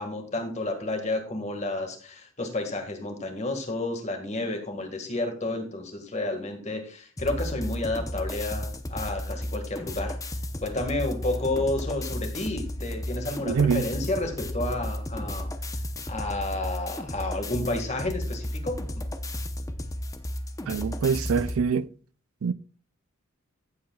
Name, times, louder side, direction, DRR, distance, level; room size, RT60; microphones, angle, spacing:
voice 1, 0.0-10.2 10.6-15.5 16.1-19.1, left 2 dB, 35° left, 1.7 m, -31 dB
sound 1, 7.2-21.6, left 1 dB, 15° left, 0.7 m, -33 dB
voice 2, 13.5-13.9 20.7-21.9 22.4-22.5, right 6 dB, 80° right, 0.4 m, -25 dB
15.0 x 7.9 x 2.3 m
head